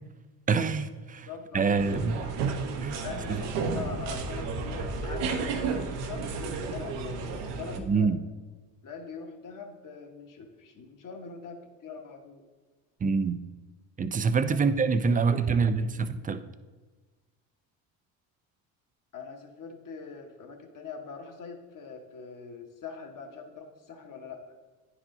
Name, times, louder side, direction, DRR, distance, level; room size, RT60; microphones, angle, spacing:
voice 1, 0.5-1.3 1.5-2.2 2.8-3.0 3.3-3.4 7.9-8.2 13.0-13.4 14.0-16.4, right 5 dB, 20° right, 11 dB, 0.4 m, -25 dB
voice 2, 1.3-2.3 3.0-7.2 7.5-8.1 8.8-12.4 14.5-14.7 15.1-16.3 19.1-24.5, left 5 dB, 45° left, 4 dB, 1.3 m, -43 dB
sound 1, 1.7-7.8, right 4 dB, 80° right, 1.0 m, -32 dB
9.5 x 4.8 x 3.8 m, 1.3 s
supercardioid pair, 75°, 42 cm